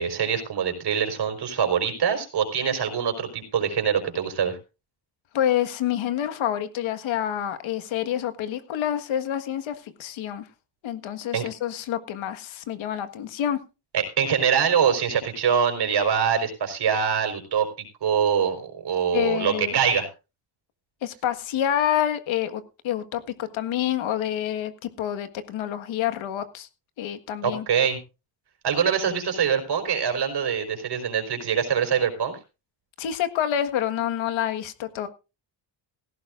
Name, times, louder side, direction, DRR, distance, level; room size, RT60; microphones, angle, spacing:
voice 1, 0.0-4.6 11.3-11.5 13.9-17.7 18.0-20.1 27.4-28.0 28.6-32.4, right 7 dB, 60° right, 4.6 m, -24 dB
voice 2, 5.3-10.4 10.8-13.6 19.1-19.7 21.0-26.7 27.0-27.6 33.0-35.1, left 10 dB, 80° left, 1.7 m, -27 dB
17.0 x 15.5 x 2.5 m
cardioid pair, 80°, 46 cm